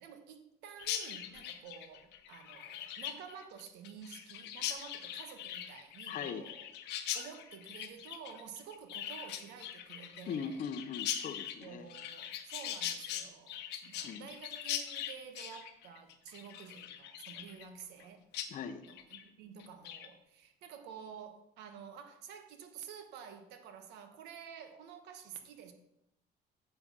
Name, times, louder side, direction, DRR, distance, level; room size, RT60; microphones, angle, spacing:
voice 1, 0.0-6.7 7.1-10.6 11.6-18.2 18.9-25.7, right 7 dB, 85° right, 1.2 m, -50 dB
Chirp tweet, 0.8-18.0 18.3-18.5 18.8-19.2 19.6-20.1, left 10 dB, 85° left, 0.9 m, -41 dB
voice 2, 6.1-6.5 10.3-11.9 14.0-14.3 18.5-18.8, left 6 dB, 50° left, 0.8 m, -40 dB
7.7 x 5.7 x 6.2 m
cardioid pair, 110°, 17 cm